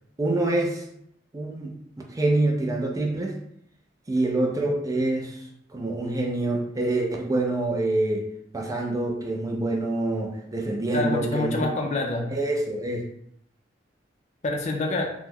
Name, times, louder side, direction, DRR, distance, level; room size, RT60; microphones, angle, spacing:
voice 1, 0.2-0.8 1.3-1.7 2.1-3.4 4.1-5.4 5.7-8.2 8.5-11.7 12.3-13.0, right 2 dB, 20° right, 0 dB, 0.4 m, -26 dB
voice 2, 10.9-12.3 14.4-15.1, left 2 dB, 40° left, 2 dB, 0.5 m, -27 dB
2.9 x 2.1 x 3.5 m, 0.73 s
head